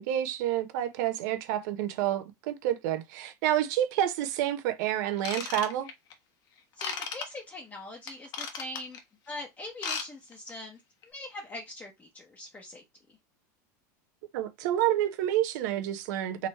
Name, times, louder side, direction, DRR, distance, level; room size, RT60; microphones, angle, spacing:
voice 1, 0.0-5.9 14.3-16.5, right 12 dB, 70° right, 1.0 m, -29 dB
Ratchet pawl / Tools, 5.2-6.1 6.8-7.3 8.1-9.0 9.7-10.1 10.3-10.5 11.0-11.1, left 6 dB, 40° left, 1.2 m, -35 dB
voice 2, 6.7-9.0 9.3-12.8, left 1 dB, 20° left, 1.0 m, -42 dB
4.1 x 3.1 x 4.2 m
supercardioid pair, 125°, 10 cm